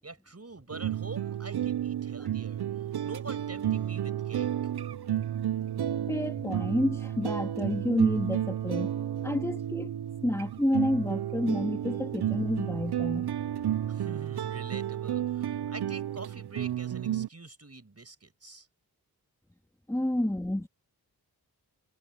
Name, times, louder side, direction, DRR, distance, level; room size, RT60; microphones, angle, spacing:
voice 1, 0.0-4.5 13.9-18.7 20.1-20.2, right 3 dB, 40° right, 6.8 m, -45 dB
sound 1, 0.7-17.3, right 11 dB, 75° right, 0.7 m, -32 dB
voice 2, 5.7-8.9 9.2-10.0 10.2-13.3 19.9-20.7, left 1 dB, 5° left, 2.0 m, -29 dB
cardioid pair, 65°, 39 cm